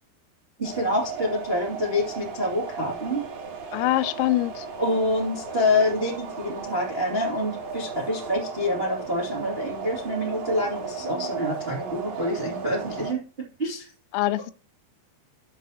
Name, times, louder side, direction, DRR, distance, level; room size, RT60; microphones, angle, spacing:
sound 1, 0.6-13.1, right 5 dB, 60° right, 4.6 m, -35 dB
voice 1, 0.6-3.2 4.8-13.2 13.6-13.9, left 1 dB, 80° right, 0.5 m, -26 dB
voice 2, 3.7-4.7 14.1-14.5, left 16 dB, 85° left, 3.3 m, -24 dB
13.0 x 5.9 x 2.8 m
omnidirectional pair, 5.8 m